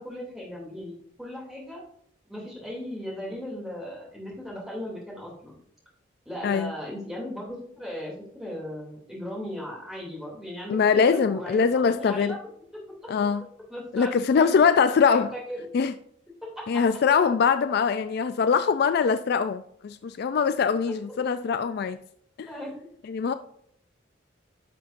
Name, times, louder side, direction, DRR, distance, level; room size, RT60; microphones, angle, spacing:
voice 1, 0.0-1.8 2.3-5.6 6.3-12.8 13.7-14.7 15.1-15.6 16.4-16.8 20.9-21.2 22.5-22.7, left 1 dB, 5° right, 2.6 m, -37 dB
voice 2, 10.7-12.4 13.1-13.4 13.9-15.3 15.7-15.9 16.7-22.0 22.4-22.5 23.1-23.3, left 6 dB, 50° left, 0.3 m, -22 dB
10.5 x 5.8 x 2.5 m
head